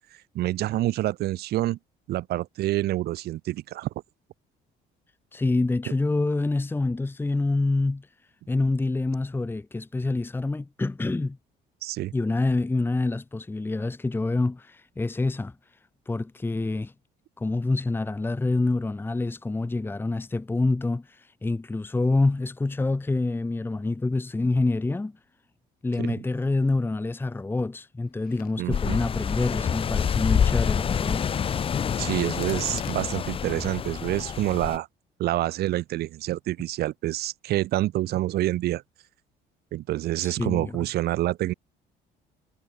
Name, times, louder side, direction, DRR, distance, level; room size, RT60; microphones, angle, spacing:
voice 1, 0.3-1.8 2.1-3.9 11.8-12.1 26.0-26.2 28.6-29.0 32.0-34.9 35.2-38.8 39.7-41.5, right 15 dB, 70° right, 1.1 m, -27 dB
voice 2, 5.3-8.1 8.5-11.4 12.1-15.5 16.1-16.9 17.4-25.2 25.8-31.2 40.2-40.8, left 2 dB, 10° left, 1.1 m, -26 dB
Chewing mastication, 28.1-33.5, left 11 dB, 60° left, 5.2 m, -52 dB
sound 1, 28.7-34.8, left 7 dB, 35° left, 0.6 m, -27 dB
cardioid pair, 110°, 17 cm